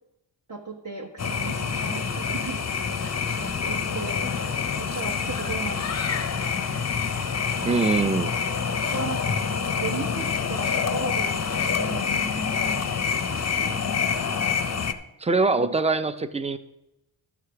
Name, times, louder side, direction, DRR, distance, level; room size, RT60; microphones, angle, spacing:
voice 1, 0.5-6.6 7.7-8.1 8.9-9.5 9.8-13.8 15.6-15.7, right 4 dB, 35° right, -2 dB, 1.2 m, -38 dB
sound 1, 1.2-14.9, left 6 dB, 35° left, 0.5 m, -27 dB
voice 2, 7.6-8.3 15.2-16.6, right 3 dB, 15° right, 12 dB, 0.4 m, -23 dB
12.0 x 4.9 x 5.8 m, 0.93 s
wide cardioid pair, 85°, 48 cm